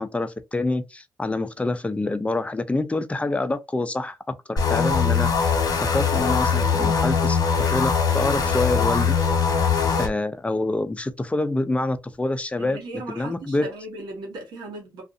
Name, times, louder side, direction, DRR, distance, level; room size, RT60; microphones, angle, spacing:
voice 1, 0.0-5.5 5.8-9.1 10.0-12.8 13.1-13.7, left 2 dB, 15° left, 0.5 m, -26 dB
sound 1, 4.6-10.1, left 5 dB, 60° left, 1.0 m, -21 dB
voice 2, 12.6-15.0, right 2 dB, 85° right, 1.2 m, -37 dB
2.5 x 2.4 x 2.5 m
cardioid pair, 60°, 7 cm